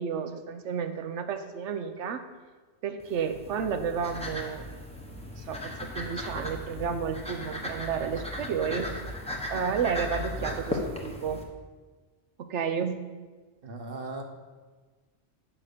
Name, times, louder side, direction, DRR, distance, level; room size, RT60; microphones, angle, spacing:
voice 1, 0.0-2.2 2.8-4.6 5.4-9.0 9.5-11.4 12.4-13.1, right 6 dB, 75° right, 8 dB, 1.0 m, -31 dB
sound 1, 3.0-11.4, left 1 dB, 5° left, 0.9 m, -37 dB
voice 2, 13.6-14.2, right 2 dB, 50° right, 4 dB, 1.2 m, -37 dB
7.5 x 5.6 x 6.5 m, 1.4 s
omnidirectional pair, 1.2 m